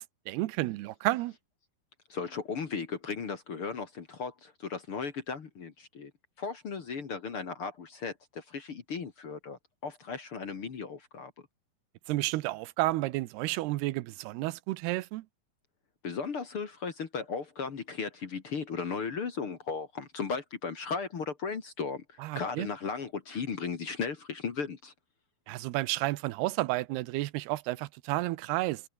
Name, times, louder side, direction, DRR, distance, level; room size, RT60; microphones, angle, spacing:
voice 1, 0.0-1.3 12.1-15.2 22.2-22.7 25.5-28.8, right 18 dB, 90° right, 2.9 m, -31 dB
voice 2, 2.1-6.1 6.4-11.3 16.0-24.9, left 5 dB, 45° left, 2.2 m, -36 dB
omnidirectional pair, 4.5 m